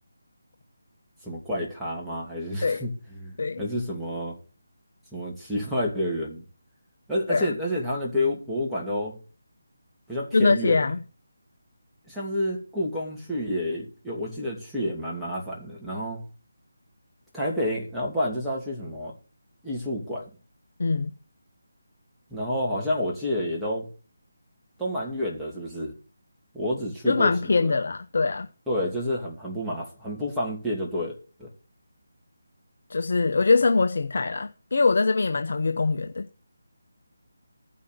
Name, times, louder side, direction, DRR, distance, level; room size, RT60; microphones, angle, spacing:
voice 1, 1.2-2.9 3.2-4.4 5.1-6.4 7.1-9.2 10.1-10.8 12.1-16.2 17.3-19.1 19.6-20.3 22.3-23.9 24.8-25.9 26.5-27.3 27.6-27.7 28.7-31.5, left 1 dB, ahead, 2.6 m, -29 dB
voice 2, 10.3-11.0 20.8-21.1 27.1-28.5 32.9-36.3, left 3 dB, 60° left, 0.9 m, -23 dB
14.5 x 5.7 x 6.8 m
figure-of-eight pair, 155°, 0 cm